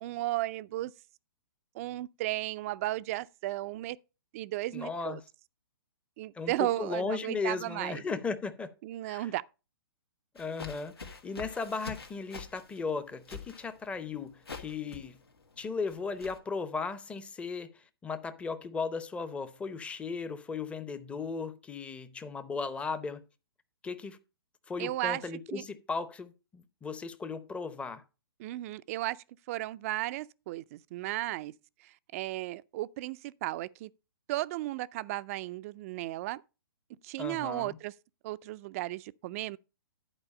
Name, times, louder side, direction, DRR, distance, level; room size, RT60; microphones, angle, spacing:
voice 1, 0.0-0.9 1.7-4.0 4.3-5.2 6.2-8.0 8.8-9.4 24.8-25.2 25.5-25.6 28.4-31.5 31.8-33.9 34.3-36.4 37.0-37.9 38.2-39.6, right 17 dB, 35° right, 0.4 m, -35 dB
voice 2, 4.7-5.2 6.3-8.7 9.0-9.3 10.3-15.2 15.6-17.7 18.0-23.2 23.8-24.2 24.7-28.0 37.2-37.8, left 4 dB, 10° left, 0.7 m, -36 dB
sound 1, 10.4-16.4, left 4 dB, 90° left, 1.9 m, -46 dB
11.0 x 4.7 x 5.2 m
hypercardioid pair, 125°, 13 cm